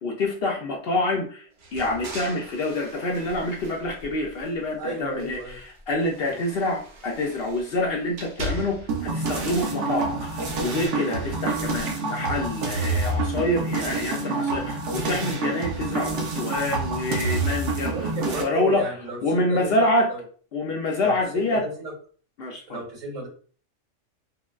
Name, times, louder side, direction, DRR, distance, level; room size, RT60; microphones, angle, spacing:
voice 1, 0.0-1.5 1.7-5.4 5.9-17.9 18.2-18.9 19.2-20.1 20.5-21.7 22.4-22.8, left 2 dB, 60° left, 1 dB, 0.7 m, -26 dB
sound 1, 1.6-4.8 5.1-9.1, right 1 dB, 50° right, 0.6 m, -39 dB
voice 2, 4.8-5.6 6.2-6.4 17.9-20.2 21.0-21.9 22.7-23.3, right 2 dB, 85° right, -3 dB, 2.1 m, -33 dB
sound 2, 8.9-18.4, right 3 dB, 70° right, 1.0 m, -27 dB
3.7 x 2.1 x 2.3 m, 0.42 s
omnidirectional pair, 1.3 m